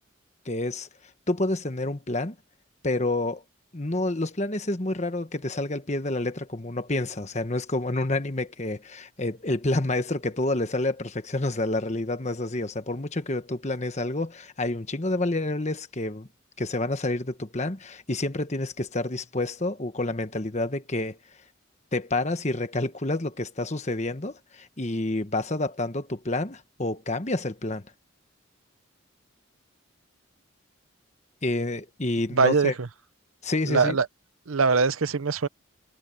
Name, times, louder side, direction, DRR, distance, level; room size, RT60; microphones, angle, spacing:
voice 1, 0.4-0.9 1.3-2.4 2.8-3.4 3.7-16.3 16.6-21.2 21.9-27.8 31.4-32.7 33.4-34.0, left 2 dB, 35° left, 1.3 m, -28 dB
voice 2, 32.3-32.9 33.7-34.1 34.5-35.5, right 4 dB, 85° right, 0.8 m, -22 dB
head